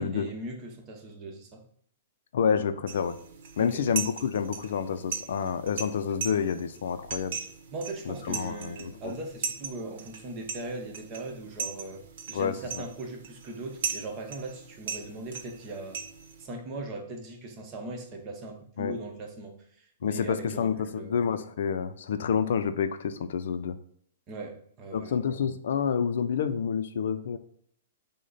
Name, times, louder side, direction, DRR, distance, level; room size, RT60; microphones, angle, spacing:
voice 1, 0.0-1.6 3.6-3.8 7.7-12.0 12.3-16.0 16.4-21.3 24.3-25.2, right 2 dB, 30° right, 2 dB, 0.9 m, -39 dB
voice 2, 2.3-3.1 3.6-7.4 8.1-9.1 12.3-12.8 18.8-19.0 20.0-23.8 24.9-27.4, left 7 dB, 70° left, 10 dB, 0.4 m, -28 dB
sound 1, 2.9-16.5, right 6 dB, 60° right, 0.8 m, -39 dB
6.3 x 2.1 x 4.0 m, 0.64 s
hypercardioid pair, 150°, 0 cm